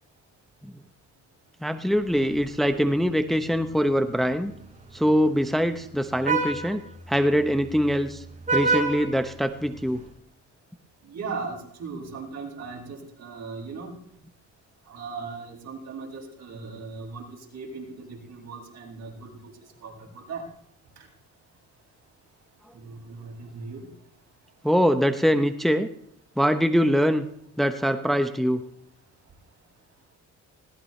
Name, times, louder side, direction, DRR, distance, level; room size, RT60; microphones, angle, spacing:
voice 1, 1.6-4.5 4.9-6.8 7.1-8.2 8.5-10.0 24.6-25.9 26.4-27.3 27.6-28.6, equal, ahead, 7 dB, 1.0 m, -23 dB
Vehicle horn car horn honking, 1.9-10.1, right 4 dB, 25° right, 6.3 m, -32 dB
voice 2, 11.0-13.9 14.9-19.5 19.8-20.5 22.7-23.9, right 4 dB, 60° right, -2 dB, 7.5 m, -38 dB
20.5 x 19.0 x 3.3 m, 0.69 s
cardioid pair, 90°, 30 cm